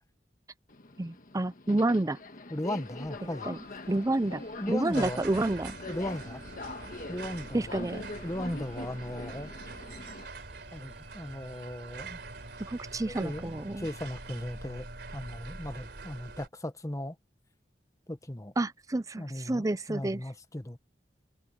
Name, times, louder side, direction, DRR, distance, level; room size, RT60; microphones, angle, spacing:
Subway metro underground, 0.7-10.3, left 2 dB, 50° left, 1.5 m, -43 dB
voice 1, 1.0-2.2 3.5-3.6 3.9-5.8 7.5-8.0 12.6-13.9 18.6-20.2, right 2 dB, 20° right, 0.5 m, -29 dB
voice 2, 2.5-3.5 4.6-5.2 5.9-6.4 7.1-7.8 8.2-9.5 10.7-12.2 13.0-14.9 15.1-17.2 18.1-18.5 19.2-20.8, left 1 dB, 20° left, 1.3 m, -37 dB
sound 1, 2.8-16.5, right 3 dB, 65° right, 3.8 m, -45 dB
sound 2, 3.5-14.6, right 5 dB, 35° right, 5.5 m, -64 dB
head